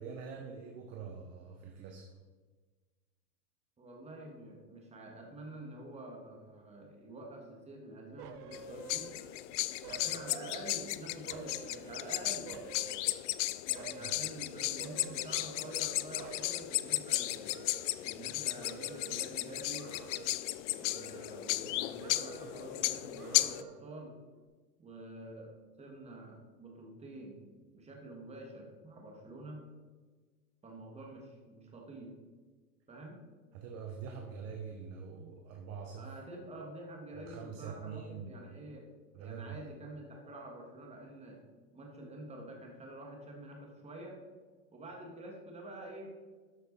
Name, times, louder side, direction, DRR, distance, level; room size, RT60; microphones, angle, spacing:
voice 1, 0.0-2.1 13.9-14.1 33.5-36.1 37.1-38.4 39.1-39.6, right 6 dB, 35° right, 3 dB, 1.0 m, -44 dB
voice 2, 3.8-9.1 9.8-12.5 13.6-17.5 18.0-19.8 20.7-24.2 24.8-25.5 25.8-27.4 27.7-29.6 30.6-32.1 32.9-33.2 36.0-38.8 39.2-41.4 41.7-44.2 44.7-46.1, right 1 dB, 15° right, 0 dB, 2.0 m, -47 dB
sound 1, 8.2-9.5 9.8-10.9 11.3-13.4 13.7-14.3 14.8-15.9 16.2-18.3 18.6-19.3 19.8-20.6 20.9-21.7 22.0-22.7 23.2-24.0 24.3-24.5, right 6 dB, 85° right, 1.2 m, -50 dB
sound 2, 8.5-23.6, left 17 dB, 55° left, 0.5 m, -35 dB
12.5 x 6.2 x 4.1 m, 1.4 s
supercardioid pair, 140°, 46 cm